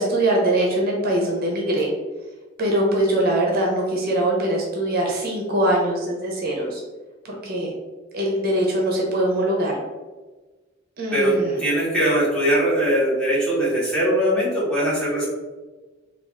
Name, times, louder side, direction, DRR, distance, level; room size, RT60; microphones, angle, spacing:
voice 1, 0.0-1.9 2.6-6.8 7.2-7.7 8.1-9.8 11.0-11.6, right 1 dB, 45° right, -1 dB, 0.6 m, -22 dB
voice 2, 11.1-15.2, right 1 dB, 5° left, -8 dB, 1.1 m, -21 dB
3.4 x 2.3 x 3.5 m, 1.2 s
head